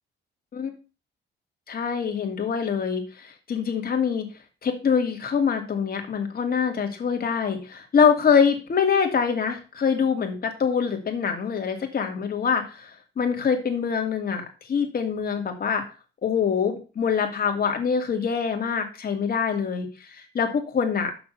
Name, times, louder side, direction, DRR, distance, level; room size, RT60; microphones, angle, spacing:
voice 1, 1.7-4.3 4.6-15.8 16.2-21.1, left 6 dB, 50° left, 4 dB, 2.5 m, -24 dB
7.1 x 6.0 x 6.7 m, 0.34 s
cardioid pair, 90°, 20 cm